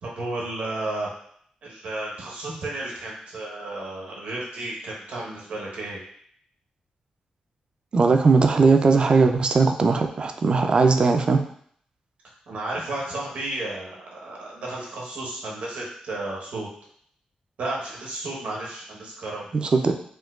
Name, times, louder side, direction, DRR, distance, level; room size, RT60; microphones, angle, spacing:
voice 1, 0.0-1.1 1.6-6.0 12.5-16.7 17.6-19.5, right 2 dB, 80° right, -3 dB, 1.0 m, -33 dB
voice 2, 7.9-11.4 19.5-19.9, right 4 dB, 40° right, 6 dB, 0.3 m, -19 dB
4.4 x 2.2 x 2.3 m, 0.63 s
wide cardioid pair, 120°, 2 cm